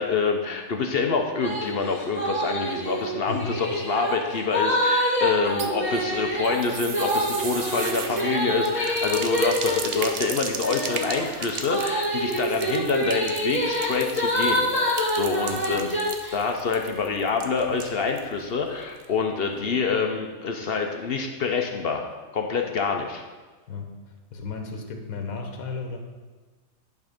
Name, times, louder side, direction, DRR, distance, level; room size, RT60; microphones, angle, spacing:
voice 1, 0.0-15.9 16.3-22.1 22.3-23.2, left 5 dB, 55° left, 4 dB, 0.8 m, -26 dB
sound 1, 1.4-1.7 2.0-16.4, equal, 10° left, 1.8 m, -26 dB
voice 2, 3.3-3.6 15.5-15.8 23.7-26.0, left 4 dB, 80° left, 4 dB, 1.4 m, -35 dB
sound 2, 5.4-18.3 18.6-18.7 19.0-19.1, right 6 dB, 55° right, 0.8 m, -36 dB
10.5 x 3.7 x 5.1 m, 1.3 s
omnidirectional pair, 1.5 m